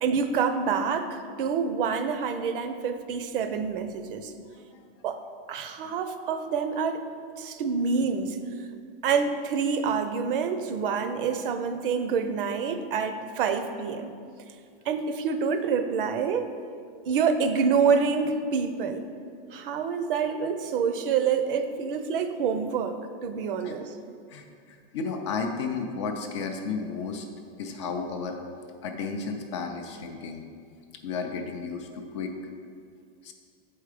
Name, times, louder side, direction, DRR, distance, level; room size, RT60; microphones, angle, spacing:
voice 1, 0.0-4.3 5.0-5.2 5.5-7.0 7.4-8.4 9.0-14.1 14.9-16.5 17.1-19.0 19.5-23.9, right 6 dB, 65° right, 8 dB, 0.6 m, -27 dB
voice 2, 4.5-4.8 19.5-19.6 23.6-23.7 24.3-27.3 27.6-28.4 28.8-30.4 31.0-32.3 33.2-33.3, left 5 dB, 30° left, 4 dB, 0.4 m, -33 dB
7.4 x 4.7 x 4.9 m, 2.2 s
supercardioid pair, 180°, 29 cm